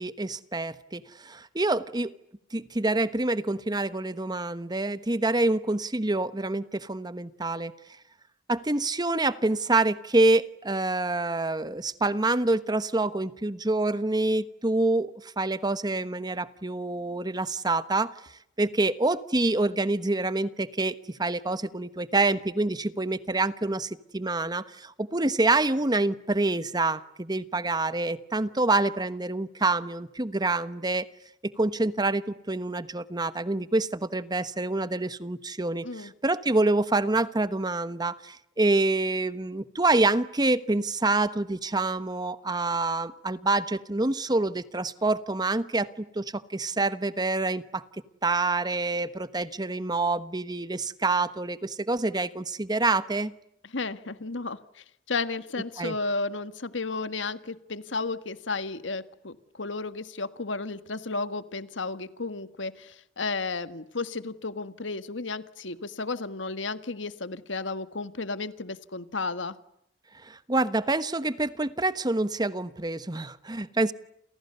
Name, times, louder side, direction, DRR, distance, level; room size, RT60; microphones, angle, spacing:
voice 1, 0.0-2.1 2.5-7.7 8.5-18.1 18.6-31.0 31.4-47.8 48.2-53.3 55.8-55.9 70.2-73.9, right 2 dB, 20° right, 14 dB, 1.2 m, -27 dB
voice 2, 53.7-69.6, left 3 dB, 80° left, 12 dB, 1.7 m, -33 dB
30.0 x 29.0 x 6.9 m, 0.78 s
head